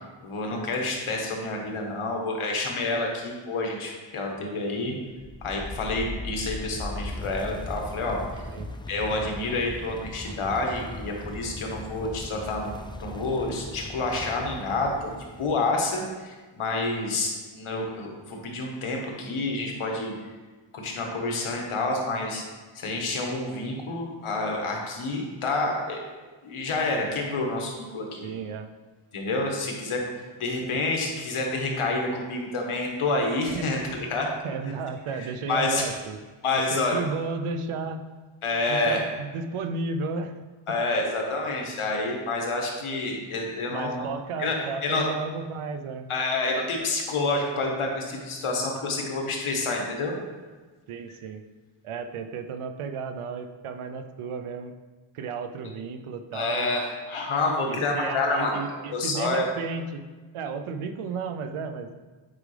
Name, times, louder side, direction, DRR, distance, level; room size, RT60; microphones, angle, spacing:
voice 1, 0.2-4.9 5.4-8.2 8.9-12.7 13.0-15.1 15.4-20.1 20.7-22.4 22.7-26.0 26.4-28.3 29.1-30.0 30.4-33.8 34.1-34.3 35.2-35.8 36.4-37.0 38.4-39.0 40.7-44.0 44.4-44.6 44.8-45.0 46.1-50.1 56.3-59.5, left 2 dB, 80° left, 1 dB, 1.5 m, -28 dB
sound 1, 5.2-15.9, left 2 dB, 10° left, 0.3 m, -38 dB
voice 2, 28.2-28.7 33.5-33.6 34.4-36.2 36.5-38.1 38.7-40.4 40.7-40.8 43.7-46.1 50.9-51.4 51.8-54.7 55.1-56.8 57.7-60.0 60.3-61.9, right 4 dB, 90° right, 8 dB, 0.7 m, -33 dB
8.5 x 5.0 x 3.3 m, 1.3 s
cardioid pair, 90°, 49 cm